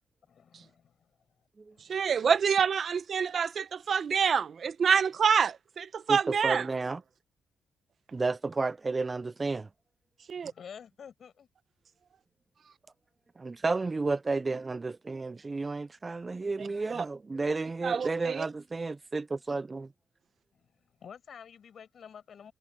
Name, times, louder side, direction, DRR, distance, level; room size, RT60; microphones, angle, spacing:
voice 1, 0.3-1.1 1.7-1.8 10.5-11.5 20.5-22.5, left 7 dB, 55° left, 6.0 m, -49 dB
voice 2, 1.9-6.7 10.3-10.5 16.6-17.1 17.8-18.5, right 6 dB, 50° right, 0.9 m, -27 dB
voice 3, 6.1-7.0 8.1-9.7 13.4-19.9, right 3 dB, 25° right, 0.3 m, -32 dB
cardioid pair, 110°, 0 cm